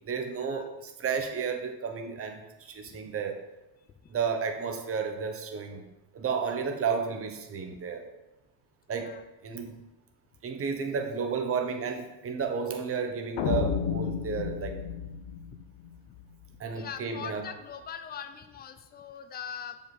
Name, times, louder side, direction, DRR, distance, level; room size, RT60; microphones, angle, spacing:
voice 1, 0.0-3.4 4.1-5.9 6.1-8.1 8.9-9.1 9.4-9.8 10.4-14.7 16.6-17.5, right 6 dB, 30° right, 5 dB, 1.0 m, -32 dB
sound 1, 13.4-16.5, left 8 dB, 60° left, 1.0 m, -32 dB
voice 2, 16.7-19.8, left 8 dB, 20° left, 10 dB, 0.5 m, -42 dB
6.7 x 5.3 x 4.0 m, 1.0 s
cardioid pair, 120°, 47 cm